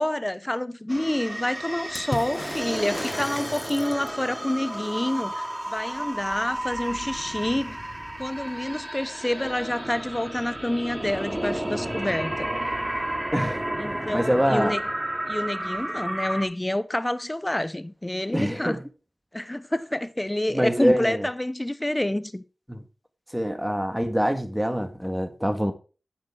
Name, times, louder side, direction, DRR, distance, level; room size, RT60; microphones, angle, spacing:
voice 1, 0.0-7.8 8.2-12.5 13.8-14.8 15.2-18.8 19.3-22.4, left 1 dB, 20° left, 0.9 m, -28 dB
sound 1, 0.9-16.4, right 1 dB, 25° right, 2.7 m, -32 dB
Water / Splash splatter, 1.9-4.3 7.6-7.7 8.0-8.7 9.8-9.9, left 2 dB, 35° left, 1.5 m, -37 dB
voice 2, 13.3-13.6 14.1-14.7 18.3-18.8 20.5-21.3 22.7-22.8 23.3-25.7, equal, 5° right, 1.9 m, -24 dB
9.2 x 7.3 x 4.9 m
cardioid pair, 45°, 0 cm